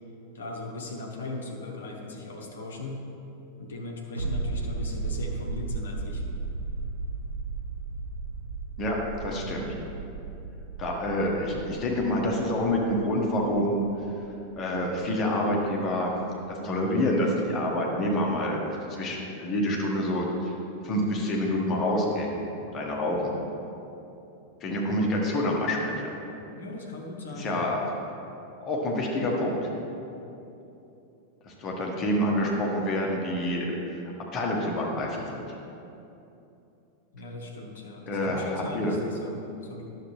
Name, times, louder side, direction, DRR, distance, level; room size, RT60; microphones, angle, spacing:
voice 1, 0.3-3.0 3.6-6.2 26.5-27.7 37.1-39.8, left 2 dB, 65° left, 1 dB, 1.1 m, -38 dB
sound 1, 4.2-15.5 15.8-15.9, right 3 dB, 90° right, 0.9 m, -35 dB
voice 2, 8.8-9.7 10.8-13.8 14.6-16.1 16.5-20.5 20.8-22.3 22.7-23.3 24.6-26.1 27.3-27.8 28.6-29.7 31.4-33.8 34.3-35.4 38.1-38.9, left 1 dB, 30° left, -1 dB, 1.5 m, -27 dB
10.5 x 6.7 x 3.3 m, 2.9 s
figure-of-eight pair, 90°, 0 cm